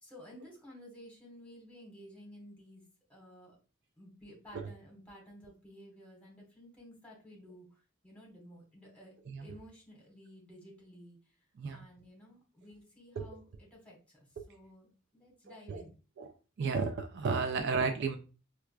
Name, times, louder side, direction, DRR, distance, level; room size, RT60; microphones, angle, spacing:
voice 1, 0.0-2.8 3.1-3.6 4.0-7.8 8.0-9.1 9.4-11.2 11.7-14.0 14.5-15.9, equal, 5° left, -3 dB, 1.2 m, -54 dB
voice 2, 15.5-15.8 16.2-16.3 16.6-18.2, right 4 dB, 55° right, 7 dB, 0.3 m, -33 dB
4.6 x 2.3 x 2.2 m, 0.34 s
head